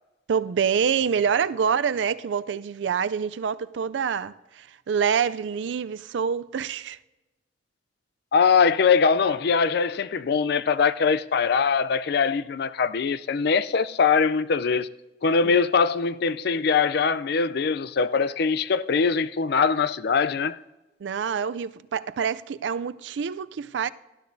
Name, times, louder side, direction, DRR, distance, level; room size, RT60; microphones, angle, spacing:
voice 1, 0.3-7.0 15.4-15.6 21.0-23.9, right 7 dB, 80° right, 0.4 m, -26 dB
voice 2, 8.3-14.9 15.2-20.6, left 5 dB, 60° left, 0.4 m, -22 dB
18.5 x 12.5 x 2.7 m
head